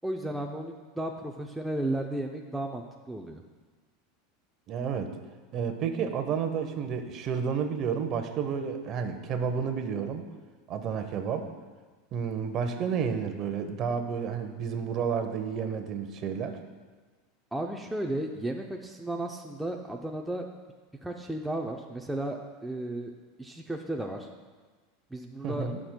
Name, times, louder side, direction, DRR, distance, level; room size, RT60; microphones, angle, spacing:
voice 1, 0.0-3.4 17.5-20.5 21.0-23.1 23.4-24.3 25.1-25.7, right 1 dB, 5° right, 1 dB, 0.5 m, -34 dB
voice 2, 4.7-5.1 5.5-10.2 10.7-11.5 12.1-16.6 25.4-25.8, right 6 dB, 40° right, 7 dB, 0.8 m, -31 dB
17.0 x 6.0 x 2.2 m, 1.4 s
supercardioid pair, 140°, 0 cm